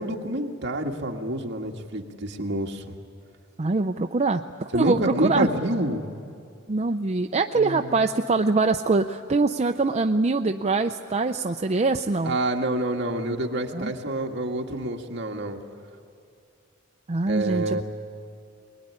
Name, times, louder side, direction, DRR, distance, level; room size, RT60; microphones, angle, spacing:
voice 1, 0.0-2.9 4.7-6.0 7.5-7.9 12.2-15.6 17.3-17.8, right 1 dB, 60° right, 2 dB, 1.9 m, -28 dB
voice 2, 3.6-5.5 6.7-12.4 13.7-13.9 17.1-17.8, right 3 dB, 35° right, 6 dB, 0.6 m, -23 dB
22.5 x 21.5 x 9.8 m, 2.4 s
head